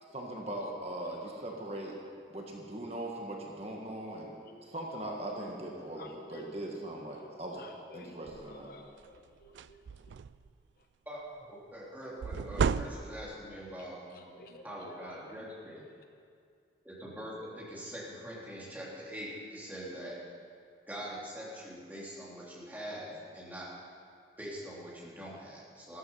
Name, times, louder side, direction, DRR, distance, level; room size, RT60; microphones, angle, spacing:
voice 1, 0.1-1.9 2.3-4.3 4.6-7.7 7.9-8.7, right 1 dB, 35° right, 0 dB, 1.5 m, -40 dB
voice 2, 5.9-6.5 7.2-7.3 7.6-8.2 8.5-9.8 12.6-12.8 14.3-15.3, left 2 dB, 55° left, 4 dB, 1.0 m, -52 dB
sound 1, 8.3-8.6 9.0-9.2 9.4-10.5 12.2-13.4, right 6 dB, 85° right, 0.3 m, -33 dB
voice 3, 11.0-15.8 16.8-20.2 20.9-23.8 24.4-26.0, equal, 10° right, -6 dB, 3.2 m, -43 dB
13.5 x 13.0 x 5.6 m, 2.3 s
head